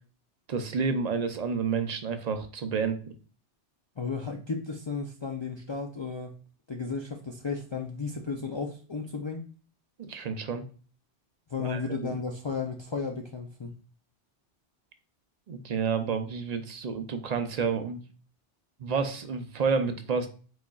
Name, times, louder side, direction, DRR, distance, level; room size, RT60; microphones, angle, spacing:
voice 1, 0.5-3.1 10.0-10.6 11.6-12.2 15.5-18.0 18.8-20.3, right 5 dB, 50° right, 8 dB, 0.5 m, -30 dB
voice 2, 4.0-6.4 6.7-9.4 11.5-13.7, left 4 dB, 50° left, 2 dB, 0.3 m, -34 dB
4.9 x 4.0 x 2.3 m, 0.39 s
omnidirectional pair, 1.2 m